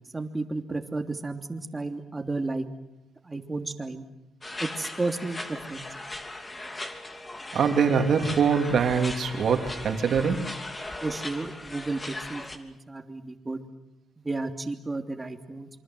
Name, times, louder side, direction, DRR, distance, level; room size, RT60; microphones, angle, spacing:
voice 1, 0.1-2.6 3.2-4.0 4.6-5.8 11.0-13.6 14.2-15.7, right 3 dB, 20° right, 3.0 m, -32 dB
sound 1, 4.4-12.6, left 2 dB, 20° left, 3.0 m, -38 dB
voice 2, 7.5-10.7, right 6 dB, 60° right, 3.0 m, -24 dB
27.0 x 24.5 x 7.8 m
cardioid pair, 90°, 0 cm